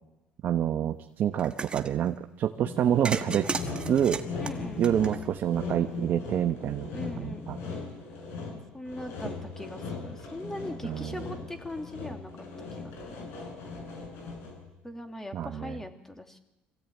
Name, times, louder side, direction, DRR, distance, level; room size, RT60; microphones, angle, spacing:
voice 1, 0.4-3.5 3.9-4.2 4.8-6.9 7.2-7.6 10.8-11.2 15.3-15.8, right 10 dB, 55° right, 6 dB, 1.1 m, -27 dB
sound 1, 1.4-1.9 3.1-5.6, right 4 dB, 25° right, 1.5 m, -35 dB
Sawing, 2.7-14.7, left 4 dB, 70° left, 7.5 m, -39 dB
voice 2, 4.4-4.8 6.9-7.5 8.7-12.3 12.7-13.3 14.8-16.4, left 1 dB, 10° left, 6 dB, 2.7 m, -40 dB
24.0 x 16.0 x 9.4 m, 0.96 s
cardioid pair, 100°, 4 cm